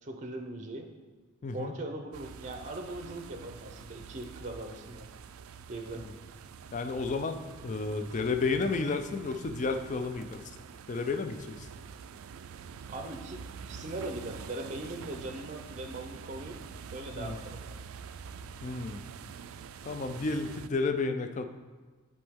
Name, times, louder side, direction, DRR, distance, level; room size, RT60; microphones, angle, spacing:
voice 1, 0.0-0.9 1.5-5.1 5.7-6.1 12.9-13.4 13.7-16.6 16.9-17.8, right 2 dB, 35° right, 5 dB, 0.5 m, -40 dB
voice 2, 1.4-1.7 6.7-10.4 10.9-11.7 17.2-17.4 18.6-19.0 19.8-21.4, left 3 dB, 35° left, 7 dB, 0.4 m, -32 dB
sound 1, 2.1-20.7, right 6 dB, 85° right, 0.3 m, -46 dB
10.5 x 4.3 x 3.6 m, 1.3 s
head